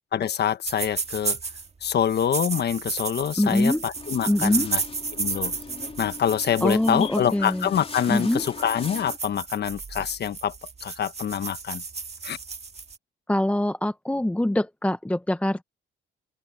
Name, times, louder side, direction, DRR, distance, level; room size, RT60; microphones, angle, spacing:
voice 1, 0.1-1.4 1.8-4.8 5.1-5.5 6.0-10.5 10.8-11.8 12.2-12.4, left 9 dB, 55° left, 1.4 m, -26 dB
sound 1, 0.7-1.7 2.1-13.0, right 5 dB, 35° right, 1.8 m, -33 dB
voice 2, 3.4-3.8 4.3-4.7 6.6-7.7 8.1-8.4 13.3-15.6, left 1 dB, 5° left, 0.8 m, -23 dB
sound 2, 3.9-9.2, left 4 dB, 30° left, 3.8 m, -40 dB
open air
cardioid pair, 90°, 20 cm